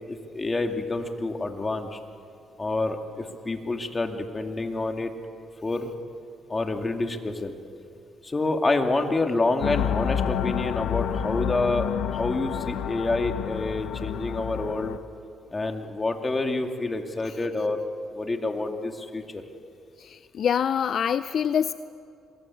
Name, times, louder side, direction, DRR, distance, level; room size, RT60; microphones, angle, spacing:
voice 1, 0.0-2.0 2.6-5.1 5.6-6.0 6.5-7.5 8.2-11.9 12.1-15.0 15.5-17.9 18.1-19.4, left 2 dB, 25° left, 4 dB, 2.4 m, -28 dB
sound 1, 9.6-15.0, left 9 dB, 80° left, 0.9 m, -29 dB
voice 2, 20.0-21.7, left 8 dB, 60° left, 13 dB, 0.5 m, -25 dB
26.5 x 21.5 x 8.6 m, 2.5 s
cardioid pair, 90°, 0 cm